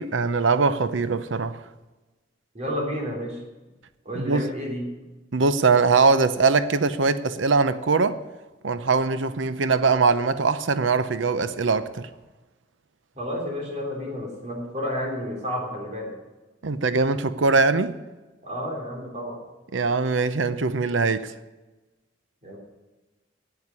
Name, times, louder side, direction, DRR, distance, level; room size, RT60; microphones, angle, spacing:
voice 1, 0.0-1.6 4.1-4.4 5.3-8.2 8.6-12.0 16.6-17.9 19.7-21.3, right 4 dB, 85° right, 13 dB, 0.7 m, -22 dB
voice 2, 2.5-3.4 4.0-4.9 13.1-16.1 18.4-19.4 22.4-22.6, equal, 40° right, 0 dB, 3.4 m, -31 dB
9.6 x 9.3 x 9.7 m, 1.1 s
head